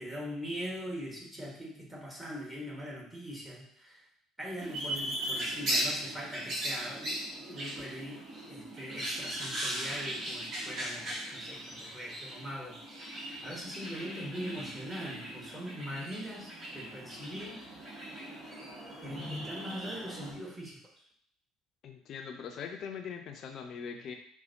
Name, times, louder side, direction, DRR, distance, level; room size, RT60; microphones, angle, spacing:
voice 1, 0.0-4.0 4.4-12.8 13.1-17.6 19.0-20.8, equal, 15° right, -3 dB, 1.6 m, -41 dB
sound 1, 4.6-20.3, right 1 dB, 45° right, 1.5 m, -38 dB
voice 2, 21.8-24.1, left 6 dB, 50° left, 4 dB, 0.6 m, -41 dB
5.5 x 2.2 x 2.9 m, 0.64 s
figure-of-eight pair, 55°, 0 cm